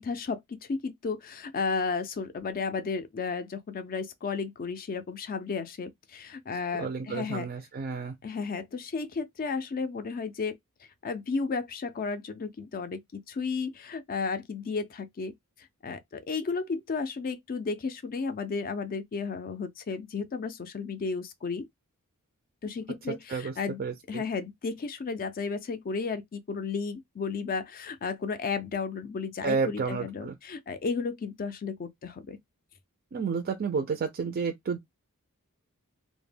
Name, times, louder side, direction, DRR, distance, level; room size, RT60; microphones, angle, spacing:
voice 1, 0.0-7.5 8.2-10.6 11.0-15.3 15.8-21.7 22.6-23.8 24.1-32.4, left 4 dB, 40° left, 0.4 m, -33 dB
voice 2, 6.8-8.1 23.3-23.5 23.8-24.2 29.4-30.3 33.1-34.8, right 5 dB, 40° right, 0.4 m, -31 dB
2.1 x 2.0 x 3.2 m
head